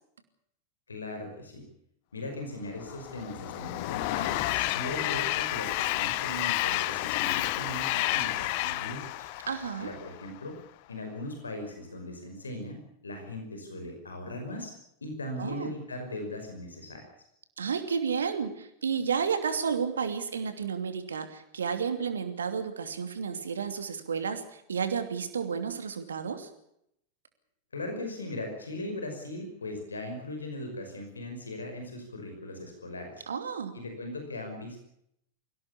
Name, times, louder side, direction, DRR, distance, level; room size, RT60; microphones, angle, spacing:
voice 1, 0.9-1.6 2.1-9.3 9.8-10.6 10.9-12.8 13.0-14.7 15.0-17.0 27.7-33.2 33.7-34.8, left 1 dB, 75° left, 5 dB, 5.6 m, -39 dB
Train, 2.8-10.3, left 17 dB, 45° left, 1.0 m, -30 dB
voice 2, 9.5-9.9 15.4-15.7 17.6-26.5 33.3-33.8, right 6 dB, 70° right, 8 dB, 2.8 m, -31 dB
24.0 x 17.0 x 8.5 m, 0.76 s
figure-of-eight pair, 90°, 0 cm